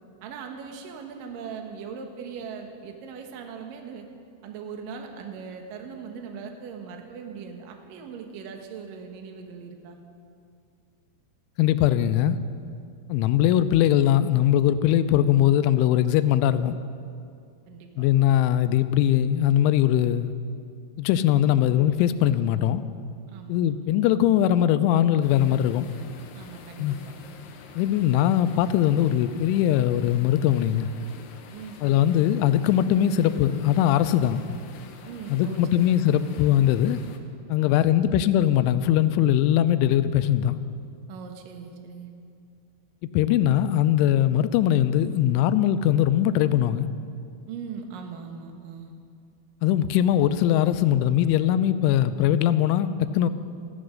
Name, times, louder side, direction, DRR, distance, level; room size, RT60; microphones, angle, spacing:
voice 1, 0.2-4.0 4.4-10.0 17.7-17.9 23.3-23.9 26.3-27.1 31.5-32.2 35.0-35.8 37.6-38.2 41.1-42.1 47.5-48.9, right 6 dB, 65° right, 3 dB, 2.3 m, -40 dB
voice 2, 11.6-12.4 13.1-16.8 18.0-20.3 21.0-22.8 23.5-25.9 26.8-27.0 27.8-30.9 31.8-34.4 35.3-37.0 37.5-40.6 43.1-46.9 49.6-53.3, left 11 dB, 90° left, 12 dB, 3.0 m, -21 dB
sound 1, 25.2-37.2, left 6 dB, 75° left, 2.6 m, -47 dB
15.0 x 13.0 x 6.3 m, 2.4 s
omnidirectional pair, 5.4 m